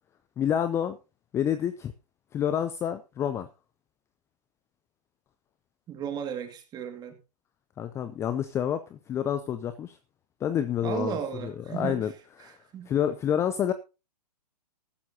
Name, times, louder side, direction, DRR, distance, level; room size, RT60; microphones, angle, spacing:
voice 1, 0.4-1.0 1.3-1.9 2.3-3.5 7.8-10.0 10.4-12.1 12.4-12.5 12.9-13.7, left 9 dB, 10° left, 0.5 m, -28 dB
voice 2, 5.9-7.1 10.8-12.0 12.4-12.9, right 8 dB, 20° right, 2.2 m, -35 dB
15.0 x 13.0 x 2.8 m
hypercardioid pair, 135°, 21 cm